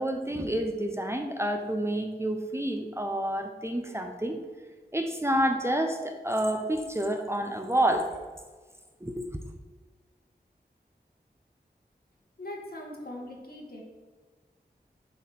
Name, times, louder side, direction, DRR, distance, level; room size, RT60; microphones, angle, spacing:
voice 1, 0.0-4.4 4.9-8.1 9.0-9.3, right 1 dB, 15° right, 4 dB, 0.8 m, -29 dB
voice 2, 12.4-13.8, left 1 dB, 60° left, -1 dB, 1.8 m, -40 dB
7.1 x 4.8 x 5.9 m, 1.4 s
wide cardioid pair, 55°, 17 cm